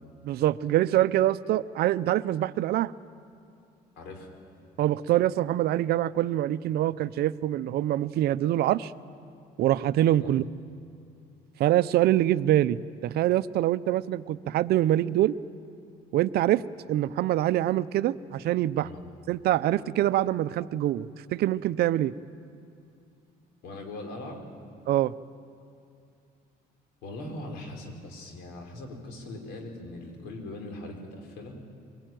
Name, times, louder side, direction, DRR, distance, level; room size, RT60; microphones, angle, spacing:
voice 1, 0.2-2.9 4.8-8.9 9.6-10.5 11.6-15.4 16.1-16.6 16.9-18.9 19.3-22.1 24.9-25.1, right 13 dB, 70° right, 15 dB, 0.6 m, -25 dB
voice 2, 4.0-4.3 10.2-10.3 18.8-19.0 23.6-24.4 27.0-31.6, left 2 dB, 90° left, 3 dB, 4.4 m, -40 dB
23.5 x 20.5 x 9.2 m, 2.5 s
cardioid pair, 110°, 17 cm